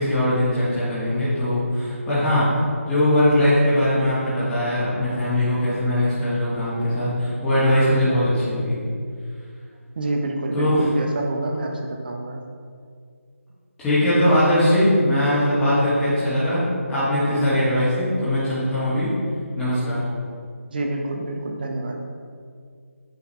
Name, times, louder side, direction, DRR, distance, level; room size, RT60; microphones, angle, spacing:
voice 1, 0.0-2.5 2.8-8.8 10.5-10.9 13.8-19.1 19.5-20.0, left 1 dB, 10° left, -12 dB, 1.5 m, -20 dB
voice 2, 10.0-12.4 20.7-22.0, right 2 dB, 40° right, 3 dB, 0.8 m, -27 dB
8.3 x 4.7 x 3.4 m, 2.2 s
figure-of-eight pair, 155°, 8 cm